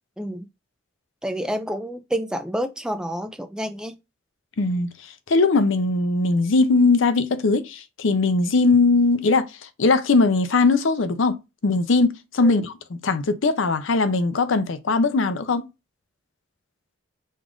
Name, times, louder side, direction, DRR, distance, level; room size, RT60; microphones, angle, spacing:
voice 1, 0.2-0.5 1.2-3.9 12.4-12.7, equal, 5° right, 0.4 m, -29 dB
voice 2, 4.6-4.9 5.3-9.5 9.8-15.7, left 3 dB, 65° left, 0.5 m, -20 dB
5.2 x 2.4 x 3.7 m
head